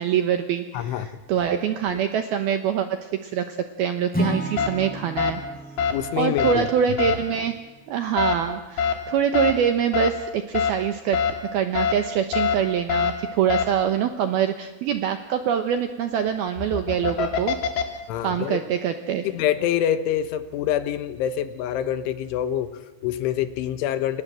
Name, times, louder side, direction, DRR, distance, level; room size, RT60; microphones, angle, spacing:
voice 1, 0.0-5.4 6.2-7.6 7.9-11.2 11.5-17.6 18.2-19.3, right 9 dB, 75° right, 8 dB, 2.3 m, -24 dB
voice 2, 0.7-1.2 5.9-6.7 18.1-18.6 19.3-24.2, left 11 dB, 75° left, 12 dB, 3.5 m, -26 dB
Acoustic guitar / Strum, 4.1-8.2, equal, ahead, 3.2 m, -33 dB
sound 1, 4.6-4.7 5.2-5.3 5.8-5.9 6.4-6.5 7.0-7.2 8.2-8.4 8.8-8.9 9.3-9.5 9.9-10.1 10.5-10.7 11.1-11.3 11.8-11.9 12.3-12.6 12.9-13.1 13.5-13.7 16.5-17.8, left 7 dB, 55° left, 4.3 m, -23 dB
29.5 x 26.5 x 7.6 m, 1.1 s
omnidirectional pair, 5.8 m